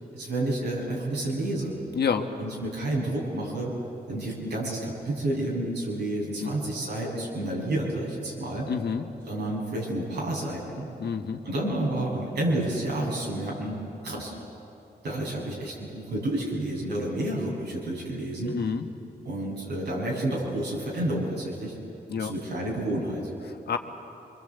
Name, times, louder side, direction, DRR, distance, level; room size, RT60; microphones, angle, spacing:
voice 1, 0.1-1.8 2.4-3.7 4.1-8.7 9.3-10.9 11.4-13.8 14.0-14.3 15.0-18.6 19.3-21.7 22.1-23.3, right 1 dB, 85° right, -3 dB, 7.0 m, -30 dB
voice 2, 1.9-2.3 6.4-6.5 8.7-9.1 11.0-11.4 18.4-18.8 22.1-22.3 23.5-23.8, left 6 dB, 75° left, 5 dB, 1.5 m, -28 dB
24.0 x 24.0 x 8.2 m, 2.9 s
cardioid pair, 55°, 17 cm